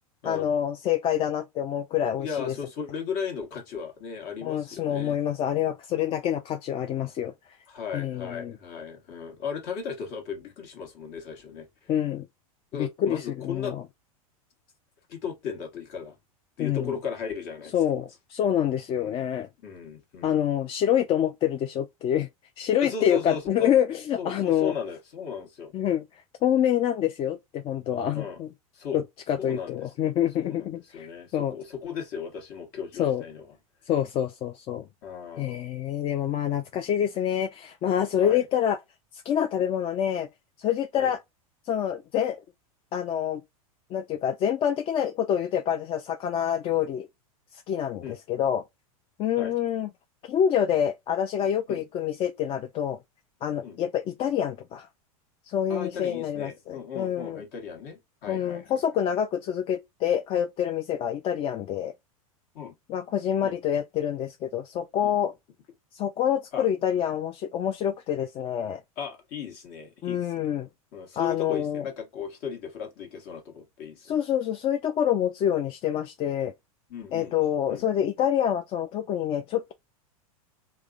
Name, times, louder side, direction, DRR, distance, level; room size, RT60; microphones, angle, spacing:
voice 1, 0.2-2.5 4.4-7.3 7.9-8.5 11.9-12.3 12.7-13.8 16.6-16.9 17.7-19.5 20.2-22.3 22.6-24.7 25.7-26.0 26.4-28.5 28.9-29.0 29.3-31.1 31.3-31.5 33.0-33.2 33.9-34.8 35.4-38.8 39.1-40.3 40.6-41.2 41.7-42.4 42.9-43.4 43.9-47.1 47.7-48.6 49.2-49.9 50.2-53.0 53.4-54.9 55.5-57.4 58.3-61.9 62.9-65.3 65.9-68.8 70.0-70.7 71.2-71.8 74.0-76.5 77.1-79.7, left 9 dB, 30° left, 0.4 m, -26 dB
voice 2, 2.2-5.2 7.7-11.9 12.7-13.8 15.1-16.2 16.6-17.7 18.9-19.2 19.6-20.4 22.8-23.7 24.2-25.7 28.1-28.4 28.7-29.0 29.4-29.9 30.4-33.6 35.0-35.7 38.2-38.4 41.0-41.1 48.0-48.2 49.4-49.6 51.7-51.8 53.6-53.8 55.7-58.8 62.5-62.8 63.4-63.6 65.0-65.2 66.5-66.7 69.0-70.5 70.9-74.2 76.9-77.3 77.7-77.9, left 6 dB, 50° left, 1.2 m, -36 dB
3.4 x 2.0 x 2.4 m
hypercardioid pair, 105°, 19 cm